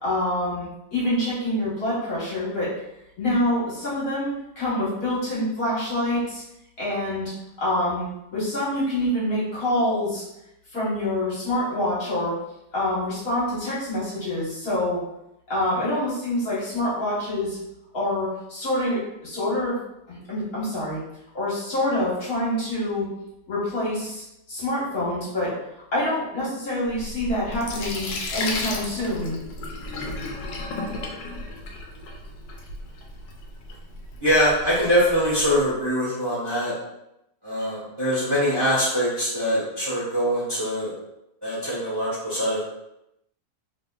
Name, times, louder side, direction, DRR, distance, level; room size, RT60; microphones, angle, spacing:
voice 1, 0.0-2.7 3.2-6.4 6.8-7.3 7.6-10.2 10.7-12.3 12.7-15.0 15.5-17.6 17.9-19.8 20.1-21.0 21.3-23.1 23.5-25.5 25.9-29.4, left 1 dB, 55° left, -9 dB, 1.8 m, -26 dB
Sink (filling or washing), 26.8-35.6, left 2 dB, 85° left, 1.3 m, -34 dB
voice 2, 34.2-36.7 37.4-40.9 41.4-42.6, equal, 20° right, -9 dB, 1.1 m, -23 dB
3.6 x 3.2 x 2.3 m, 0.84 s
omnidirectional pair, 1.9 m